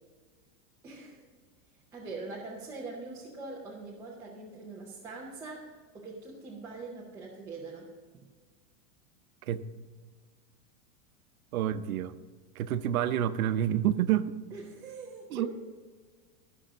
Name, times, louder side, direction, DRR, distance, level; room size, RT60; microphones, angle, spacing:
voice 1, 0.8-1.2 1.9-5.7 5.9-7.9 14.5-15.5, right 3 dB, 5° right, -6 dB, 0.6 m, -42 dB
voice 2, 11.5-12.2 12.6-14.3 15.3-15.5, right 11 dB, 80° right, 12 dB, 0.8 m, -28 dB
12.5 x 6.4 x 6.3 m, 1.5 s
supercardioid pair, 170°, 41 cm